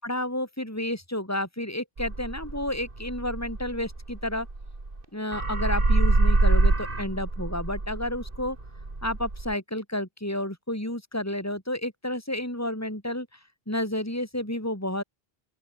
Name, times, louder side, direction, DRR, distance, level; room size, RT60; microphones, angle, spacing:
voice 1, 0.0-4.5 5.1-8.6 9.0-13.4 13.7-15.0, left 1 dB, 15° left, 5.2 m, -31 dB
sound 1, 2.0-5.0 5.3-9.5, right 2 dB, 60° right, 3.3 m, -25 dB
open air
omnidirectional pair, 1.0 m